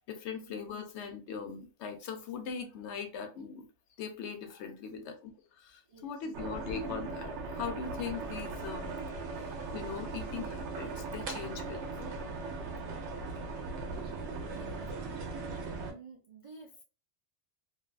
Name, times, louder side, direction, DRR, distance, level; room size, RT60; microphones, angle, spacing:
voice 1, 0.0-3.7 4.0-5.2 5.5-12.2, left 6 dB, 75° left, 0.9 m, -41 dB
voice 2, 5.8-6.5 13.9-14.8 15.8-16.8, right 3 dB, 50° right, 0.4 m, -54 dB
sound 1, 6.3-15.9, right 3 dB, 75° right, 0.9 m, -39 dB
2.5 x 2.3 x 2.2 m
omnidirectional pair, 1.2 m